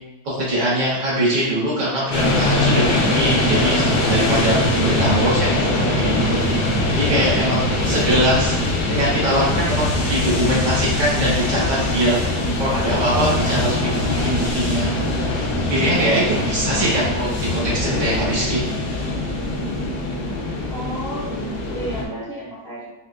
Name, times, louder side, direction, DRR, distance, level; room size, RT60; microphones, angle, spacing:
voice 1, 0.2-6.6 6.9-8.6 8.9-12.2 12.6-14.9 15.6-18.6, right 1 dB, 90° right, -8 dB, 2.0 m, -22 dB
sound 1, 2.1-22.0, left 2 dB, 75° left, 1.1 m, -22 dB
voice 2, 20.7-22.8, equal, 55° left, -8 dB, 0.6 m, -32 dB
4.6 x 2.7 x 2.3 m, 1.1 s
omnidirectional pair, 1.8 m